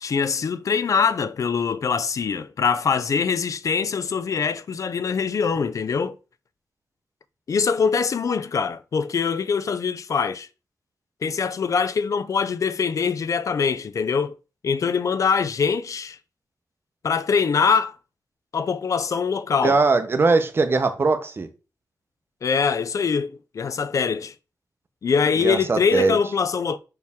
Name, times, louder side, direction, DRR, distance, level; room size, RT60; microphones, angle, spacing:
voice 1, 0.0-6.2 7.5-10.5 11.2-14.3 14.6-16.2 17.0-18.0 18.5-19.8 22.4-24.3 25.0-26.8, left 6 dB, 55° left, 0.4 m, -23 dB
voice 2, 19.6-21.5 25.4-26.2, right 3 dB, 35° right, 0.8 m, -20 dB
6.0 x 4.5 x 3.5 m
wide cardioid pair, 170°, 7 cm